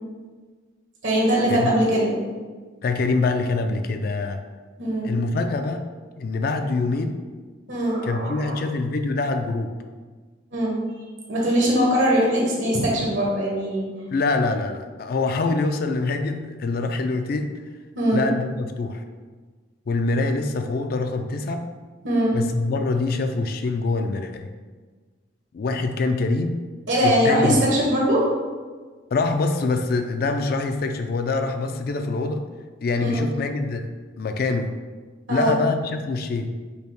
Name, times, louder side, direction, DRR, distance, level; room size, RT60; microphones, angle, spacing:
voice 1, 1.0-2.1 4.8-5.1 7.7-8.6 10.5-10.8 11.3-13.9 17.9-18.3 22.0-22.4 26.9-28.2 33.0-33.2 35.3-35.5, equal, 80° right, -4 dB, 1.3 m, -21 dB
voice 2, 2.8-4.4 5.0-5.8 6.2-7.2 8.0-9.7 14.1-17.5 18.1-19.0 19.9-21.6 22.3-24.5 25.5-26.6 27.0-27.6 29.1-32.4 32.8-34.7 35.3-36.5, left 3 dB, 50° left, 6 dB, 0.3 m, -24 dB
5.5 x 2.1 x 4.5 m, 1.4 s
head